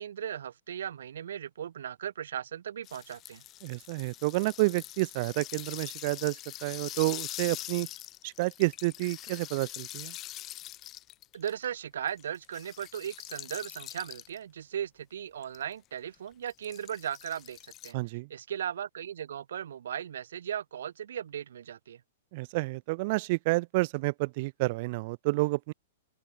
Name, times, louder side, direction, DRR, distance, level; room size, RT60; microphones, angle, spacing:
voice 1, 0.0-3.4 11.3-18.0 18.3-22.0, right 9 dB, 75° right, 3.8 m, -37 dB
sound 1, 2.8-11.7 12.1-14.4 15.4-15.6 16.1-17.9, left 15 dB, 20° left, 4.7 m, -43 dB
voice 2, 3.6-7.9 8.2-10.1 17.9-18.3 22.3-25.7, right 23 dB, 35° right, 2.2 m, -30 dB
open air
hypercardioid pair, 165°, 0 cm